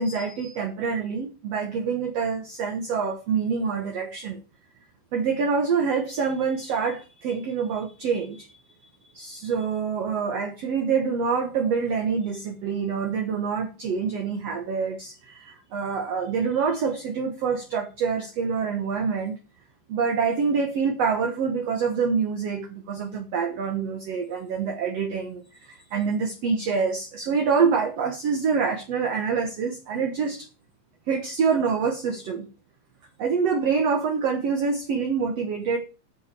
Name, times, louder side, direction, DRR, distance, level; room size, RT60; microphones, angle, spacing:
voice 1, 0.0-4.4 5.1-8.5 9.1-19.4 19.9-30.5 31.1-32.5 33.2-35.8, right 5 dB, 55° right, 1.8 m, -26 dB
8.7 x 7.6 x 7.0 m
omnidirectional pair, 4.5 m